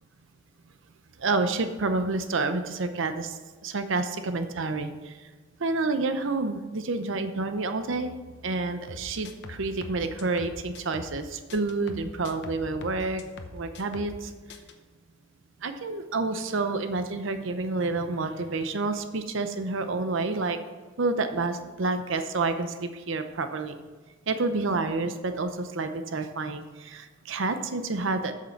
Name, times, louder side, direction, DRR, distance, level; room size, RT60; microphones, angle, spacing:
voice 1, 1.2-5.2 5.6-8.1 8.4-13.2 13.5-14.3 15.6-20.6 21.0-23.8 24.3-28.3, right 3 dB, 70° right, 9 dB, 0.7 m, -29 dB
sound 1, 8.9-11.2 11.5-14.2 14.5-14.7, left 2 dB, 60° left, 0.9 m, -43 dB
8.3 x 6.7 x 5.8 m, 1.4 s
head